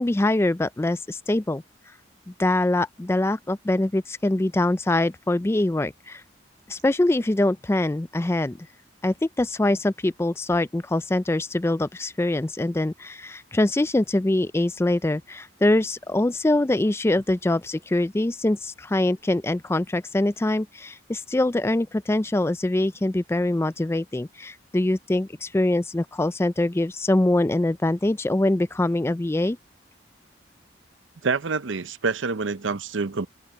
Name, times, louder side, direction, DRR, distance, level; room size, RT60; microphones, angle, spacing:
voice 1, 0.0-1.6 2.4-6.2 6.7-8.6 9.0-29.6, left 1 dB, 15° left, 0.3 m, -23 dB
voice 2, 31.2-33.3, right 4 dB, 90° right, 0.7 m, -27 dB
head